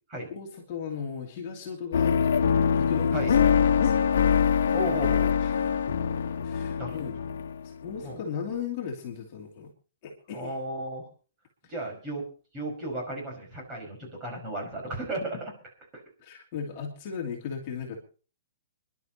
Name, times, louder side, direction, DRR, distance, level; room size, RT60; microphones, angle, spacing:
voice 1, 0.3-4.1 5.4-5.7 6.4-7.4 7.6-9.7 10.0-10.6 16.2-18.2, left 7 dB, 30° left, 0 dB, 2.8 m, -37 dB
sound 1, 1.9-8.0, left 7 dB, 75° left, 1.2 m, -24 dB
voice 2, 4.7-5.3 6.3-6.4 6.8-7.0 8.0-8.2 10.3-11.0 11.7-12.3 12.5-15.5 15.9-16.0, right 1 dB, 15° right, 0 dB, 5.5 m, -34 dB
29.5 x 11.5 x 3.0 m, 0.37 s
hypercardioid pair, 175°, 0 cm